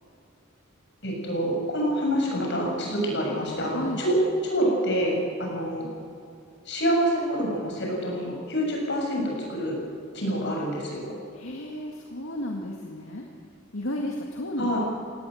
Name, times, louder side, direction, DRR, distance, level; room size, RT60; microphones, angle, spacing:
voice 1, 1.0-4.2 4.4-5.9 6.7-9.8 10.1-11.1 14.6-14.8, equal, 60° left, -1 dB, 7.1 m, -27 dB
voice 2, 3.7-4.0 11.3-13.2 13.7-14.8, left 1 dB, 80° left, 1 dB, 2.0 m, -33 dB
18.5 x 18.0 x 7.8 m, 2.4 s
head